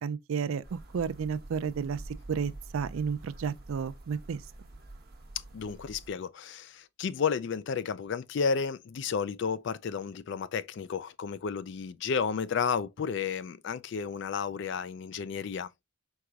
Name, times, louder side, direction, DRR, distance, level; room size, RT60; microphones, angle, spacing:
voice 1, 0.0-2.0 2.3-4.4, right 6 dB, 70° right, 0.3 m, -32 dB
sound 1, 0.6-6.1, right 2 dB, 45° right, 1.0 m, -47 dB
voice 2, 5.5-15.7, left 6 dB, 55° left, 0.3 m, -32 dB
4.6 x 3.9 x 2.3 m
head